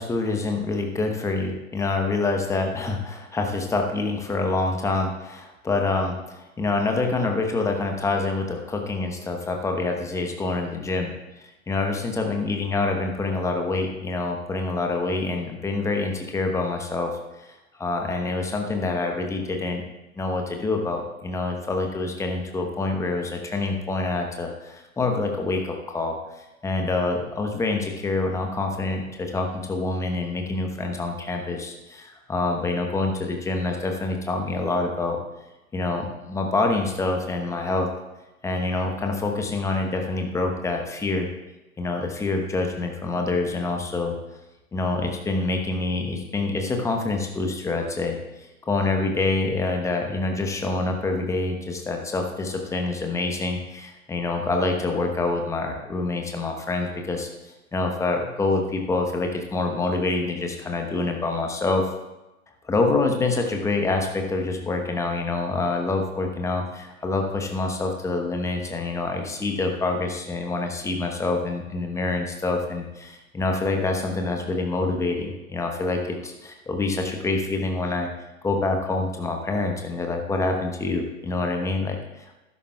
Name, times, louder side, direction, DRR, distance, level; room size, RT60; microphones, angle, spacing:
voice 1, 0.0-11.1 11.7-19.8 20.2-35.2 35.7-37.9 38.4-41.3 41.8-44.2 44.7-61.9 62.6-78.1 78.4-82.4, left 3 dB, 5° left, 3 dB, 1.1 m, -26 dB
15.0 x 12.5 x 2.4 m, 1.0 s
figure-of-eight pair, 115°, 44 cm